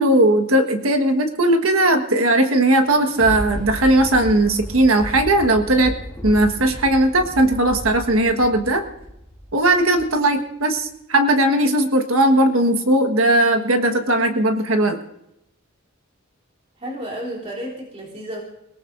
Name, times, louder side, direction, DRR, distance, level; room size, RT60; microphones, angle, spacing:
voice 1, 0.0-5.9 6.2-8.8 9.5-15.0, right 1 dB, 80° right, 6 dB, 1.5 m, -18 dB
Thunder, 2.8-10.3 10.8-10.9, equal, 5° left, 2.0 m, -33 dB
voice 2, 16.8-18.4, equal, 30° right, -5 dB, 3.3 m, -31 dB
29.0 x 18.0 x 2.6 m, 0.82 s
head